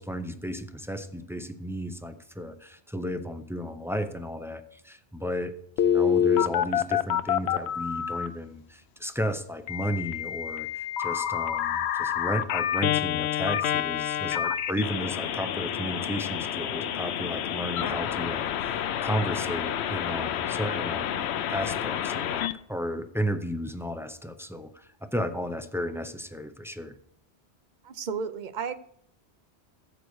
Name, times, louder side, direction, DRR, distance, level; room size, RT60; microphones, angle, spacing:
voice 1, 0.0-21.2 21.5-22.4 22.7-27.0, equal, 5° right, 8 dB, 0.3 m, -34 dB
Telephone, 5.8-8.3 9.7-22.5, left 10 dB, 75° left, 0.8 m, -28 dB
voice 2, 27.8-28.7, right 6 dB, 50° right, 13 dB, 0.6 m, -33 dB
14.5 x 8.1 x 3.2 m, 0.70 s
omnidirectional pair, 1.1 m